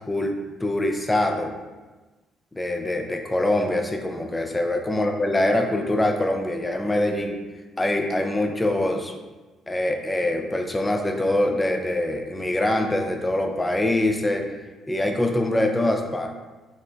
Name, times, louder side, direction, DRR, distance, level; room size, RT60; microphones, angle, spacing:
voice 1, 0.1-1.5 2.6-7.4 7.8-9.1 9.7-14.5 14.9-16.3, left 1 dB, 20° left, 4 dB, 0.4 m, -24 dB
2.9 x 2.1 x 2.5 m, 1.2 s
supercardioid pair, 70°, 0 cm